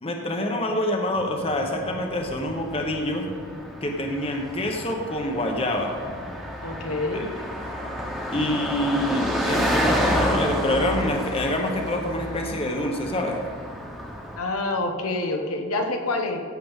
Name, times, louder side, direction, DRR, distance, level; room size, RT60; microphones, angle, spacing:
voice 1, 0.0-3.3 3.8-6.0 7.1-7.3 8.3-13.4, left 1 dB, 25° left, 2 dB, 0.9 m, -26 dB
Car passing by, 1.2-14.4, equal, ahead, 1.3 m, -30 dB
voice 2, 6.6-7.2 14.4-16.4, left 2 dB, 85° left, 3 dB, 1.3 m, -27 dB
14.5 x 7.6 x 3.6 m, 2.3 s
head